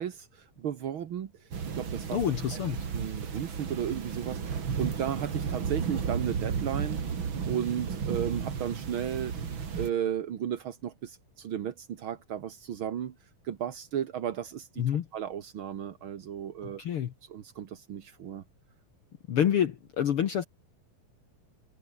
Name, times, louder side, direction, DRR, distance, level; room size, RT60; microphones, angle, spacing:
voice 1, 0.0-1.5 1.7-2.2 2.5-2.6 2.9-7.0 7.5-9.3 9.7-13.1 13.4-14.8 15.1-16.8 17.2-18.4, right 9 dB, 55° right, 1.4 m, -34 dB
sound 1, 1.5-9.9, right 6 dB, 40° right, 2.6 m, -33 dB
voice 2, 2.1-2.8 14.8-15.1 16.8-17.1 19.3-20.4, left 9 dB, 70° left, 1.3 m, -27 dB
omnidirectional pair, 4.1 m